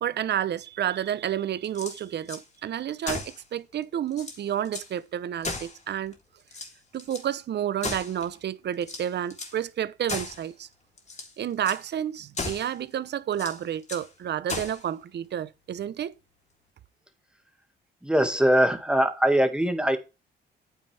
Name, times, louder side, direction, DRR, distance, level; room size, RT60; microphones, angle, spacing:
voice 1, 0.0-6.2 6.9-10.7 11.4-16.1, right 10 dB, 60° right, 0.9 m, -30 dB
sound 1, 1.6-2.4 3.0-3.4 3.8-3.9 4.1-4.9 5.4-6.1 6.5-7.3 7.8-8.4 8.8-9.6 10.1-10.5 11.0-11.3 11.6-11.8 12.3-12.8 13.3-14.1 14.5-14.9, left 3 dB, 35° left, 3.5 m, -36 dB
voice 2, 18.0-20.0, equal, 5° right, 2.1 m, -22 dB
9.0 x 8.2 x 3.4 m
cardioid pair, 90°, 20 cm